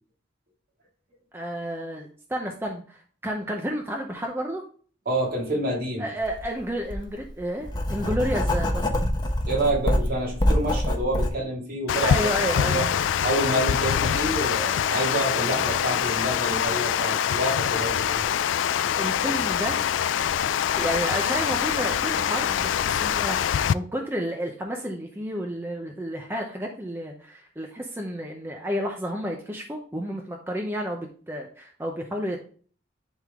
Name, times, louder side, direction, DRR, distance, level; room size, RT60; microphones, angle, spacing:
voice 1, 1.3-4.6 6.0-8.9 12.0-13.0 19.0-19.8 20.7-32.4, equal, 10° right, 1 dB, 0.8 m, -31 dB
voice 2, 5.1-6.1 9.5-12.3 12.6-12.9 13.2-18.3, right 1 dB, 55° right, -2 dB, 2.4 m, -28 dB
Writing, 6.2-6.4 6.9-11.3, left 1 dB, 25° left, 0.9 m, -25 dB
Water, 11.9-23.7, left 9 dB, 85° left, 0.3 m, -24 dB
10.5 x 3.7 x 3.7 m, 0.44 s
head